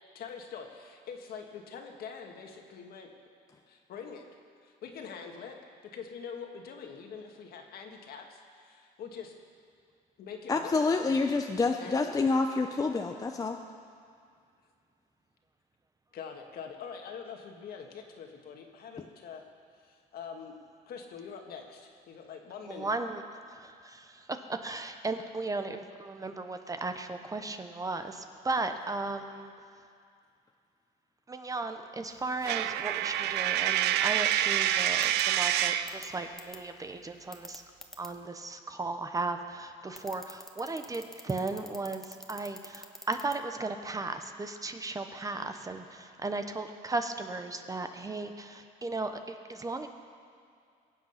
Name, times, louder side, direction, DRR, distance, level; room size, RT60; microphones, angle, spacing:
voice 1, 0.1-3.1 3.7-4.2 4.6-5.6 5.9-9.3 10.2-10.8 11.8-12.2 16.1-19.4 19.8-20.6 20.9-22.9, left 6 dB, 65° left, 3 dB, 1.8 m, -44 dB
voice 2, 10.5-13.6, left 3 dB, 20° left, 4 dB, 0.7 m, -27 dB
voice 3, 22.7-23.2 23.5-23.6 24.6-29.5 31.3-37.6 38.0-49.9, right 3 dB, 20° right, 7 dB, 0.9 m, -36 dB
Coin (dropping), 32.4-36.0, right 11 dB, 85° right, 0.6 m, -27 dB
sound 1, 35.0-35.2 35.9-36.0 36.4-36.6 37.3-38.1 39.9-43.4, left 1 dB, ahead, 1.2 m, -45 dB
22.5 x 7.9 x 5.8 m, 2.3 s
cardioid pair, 110°, 17 cm